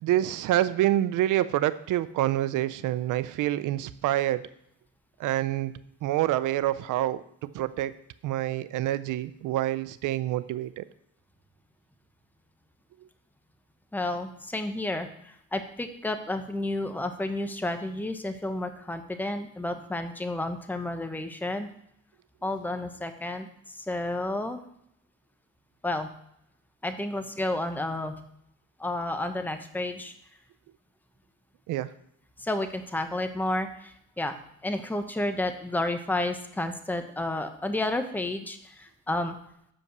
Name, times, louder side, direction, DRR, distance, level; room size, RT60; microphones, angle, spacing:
voice 1, 0.0-4.5 5.2-5.7 6.0-7.2 7.5-7.9 8.2-10.9 31.7-31.9, right 14 dB, 85° right, 15 dB, 0.6 m, -27 dB
voice 2, 13.9-21.7 22.4-24.6 25.8-26.1 26.8-28.1 28.8-30.1 32.4-34.4 34.6-39.4, left 1 dB, 5° left, 7 dB, 0.9 m, -31 dB
8.5 x 5.2 x 6.7 m, 0.74 s
cardioid pair, 90°, 30 cm